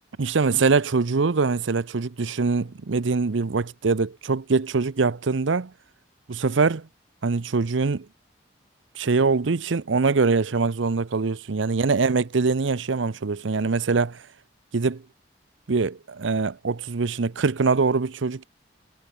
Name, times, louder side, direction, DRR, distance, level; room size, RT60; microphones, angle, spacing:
voice 1, 0.2-5.7 6.3-6.9 7.2-8.1 9.0-14.2 14.7-15.0 15.7-18.4, right 4 dB, 90° right, 0.7 m, -23 dB
head